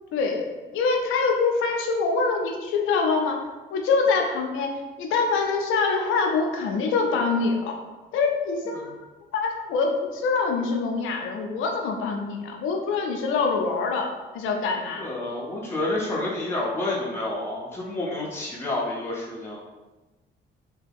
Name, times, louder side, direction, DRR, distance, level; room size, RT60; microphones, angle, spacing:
voice 1, 0.1-3.5 3.7-4.7 5.0-7.8 8.1-8.9 9.3-15.1, left 4 dB, 90° left, 2 dB, 0.6 m, -25 dB
voice 2, 15.0-19.6, left 2 dB, 10° left, -5 dB, 0.7 m, -29 dB
3.3 x 2.2 x 3.4 m, 1.2 s
cardioid pair, 90°, 20 cm